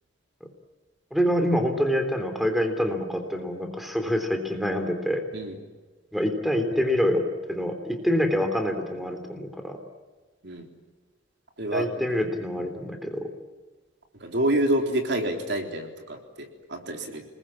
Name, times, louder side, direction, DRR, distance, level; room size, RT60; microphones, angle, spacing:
voice 1, 1.1-5.2 6.1-9.8 11.7-13.3, equal, ahead, 5 dB, 3.4 m, -26 dB
voice 2, 11.6-12.3 14.2-17.3, right 1 dB, 60° right, 3 dB, 3.8 m, -28 dB
29.5 x 21.0 x 8.7 m, 1.3 s
head